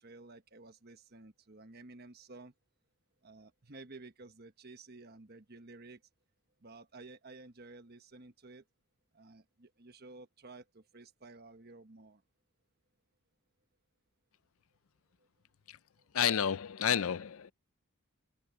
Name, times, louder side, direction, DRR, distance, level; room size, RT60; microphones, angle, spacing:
voice 1, 0.0-2.5 3.2-6.0 6.6-8.6 9.1-12.2, right 3 dB, 45° right, 1.3 m, -53 dB
voice 2, 16.1-17.5, left 8 dB, 70° left, 0.5 m, -30 dB
head